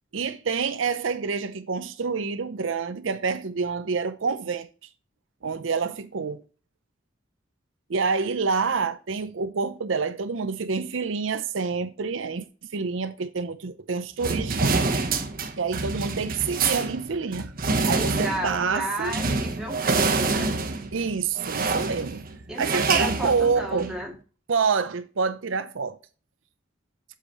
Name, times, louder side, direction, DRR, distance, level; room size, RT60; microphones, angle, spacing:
voice 1, 0.1-4.7 5.4-6.4 7.9-12.5 12.7-14.9 15.6-17.5 17.8-19.1 20.9-22.2 22.6-23.9 24.5-26.0, right 5 dB, 85° right, 0.6 m, -27 dB
sound 1, 14.2-24.0, right 3 dB, 50° right, 1.0 m, -27 dB
voice 2, 17.9-20.6 22.5-24.1, right 1 dB, 5° right, 1.8 m, -33 dB
7.6 x 5.0 x 3.1 m
head